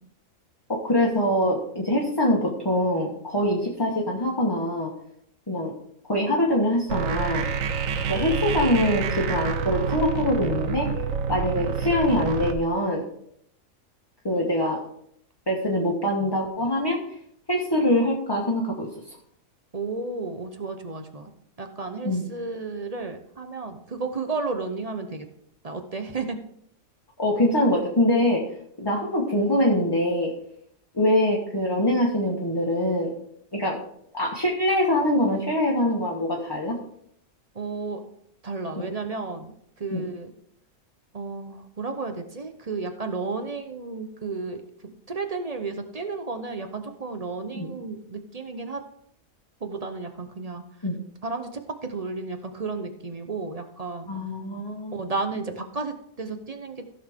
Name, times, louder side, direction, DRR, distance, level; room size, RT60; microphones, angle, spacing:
voice 1, 0.7-4.9 5.5-5.7 6.1-7.4 8.1-11.0 11.3-13.0 14.2-14.8 15.5-17.0 17.5-18.9 22.0-22.3 27.2-28.4 28.8-30.3 30.9-33.1 33.5-33.8 34.1-36.8 38.7-38.8 39.9-40.0 47.6-47.7 50.8-51.0 54.1-54.9, left 1 dB, 20° left, -2 dB, 1.3 m, -23 dB
sound 1, 6.9-12.5, right 6 dB, 70° right, 1.2 m, -27 dB
voice 2, 19.7-21.3 21.6-25.3 25.6-26.4 37.5-38.0 38.4-40.3 41.1-48.8 49.6-50.6 51.2-54.1 54.9-56.9, right 3 dB, 35° right, 7 dB, 0.8 m, -33 dB
15.0 x 6.4 x 3.6 m, 0.71 s
omnidirectional pair, 1.5 m